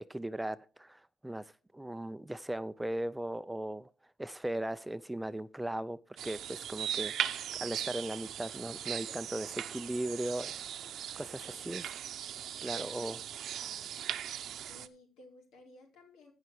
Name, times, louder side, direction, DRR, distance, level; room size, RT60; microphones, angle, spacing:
voice 1, 0.0-3.9 4.2-6.0 6.2-10.6 10.9-11.9 12.6-13.2 13.5-13.7, right 1 dB, 10° right, 14 dB, 0.5 m, -38 dB
sound 1, 6.2-14.9, right 10 dB, 70° right, 0.7 m, -39 dB
voice 2, 11.3-12.1 12.7-13.8 14.1-14.3 14.7-16.3, left 2 dB, 85° left, 1 dB, 4.3 m, -58 dB
15.5 x 5.7 x 4.8 m, 0.36 s
cardioid pair, 90°, 0 cm